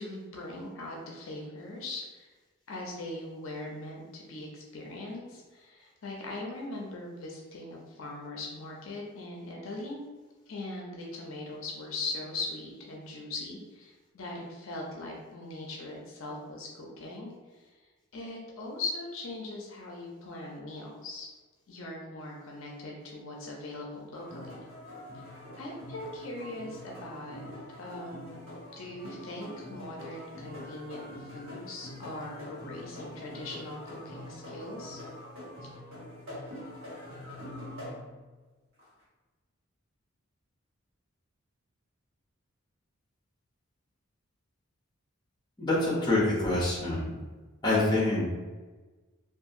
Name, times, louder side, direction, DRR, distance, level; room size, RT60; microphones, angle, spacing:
voice 1, 0.0-2.3 2.7-10.0 10.5-17.7 18.1-21.3 21.7-24.6 25.1-27.4 27.8-28.4 28.8-35.0, left 2 dB, 65° left, -1 dB, 0.5 m, -40 dB
sound 1, 24.1-38.3 38.8-38.9, left 1 dB, 65° right, 1.1 m, -44 dB
voice 2, 45.6-47.1 47.6-48.3, left 2 dB, 20° left, -5 dB, 0.7 m, -26 dB
2.7 x 2.5 x 2.5 m, 1.3 s
head